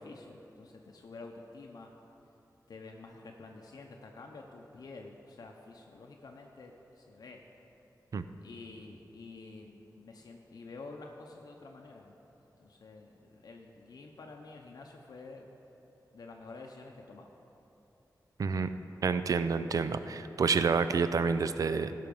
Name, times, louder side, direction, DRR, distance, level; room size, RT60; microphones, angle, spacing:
voice 1, 0.0-1.9 2.7-7.4 8.4-12.2 12.6-15.5 16.1-17.3, left 3 dB, 65° left, 1 dB, 0.7 m, -49 dB
voice 2, 19.0-21.9, right 5 dB, 55° right, 11 dB, 0.4 m, -28 dB
16.5 x 5.8 x 5.3 m, 3.0 s
wide cardioid pair, 175°, 7 cm